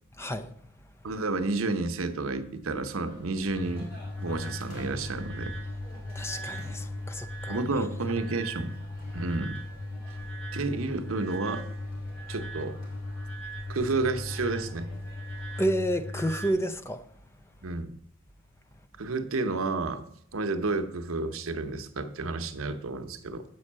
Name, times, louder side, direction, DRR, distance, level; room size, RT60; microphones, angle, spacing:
voice 1, 0.2-0.5 6.2-7.6 15.6-17.0, equal, 15° left, 0.5 m, -30 dB
voice 2, 1.0-5.6 7.5-8.8 9.1-9.6 10.5-11.7 12.3-12.8 13.7-14.9 17.6-18.0 19.0-20.0 20.3-23.4, right 3 dB, 85° right, 0.8 m, -31 dB
sound 1, 3.0-15.7, equal, 45° left, 3.4 m, -50 dB
sound 2, 3.6-16.5, left 1 dB, 85° left, 3.2 m, -38 dB
7.8 x 5.4 x 7.4 m
head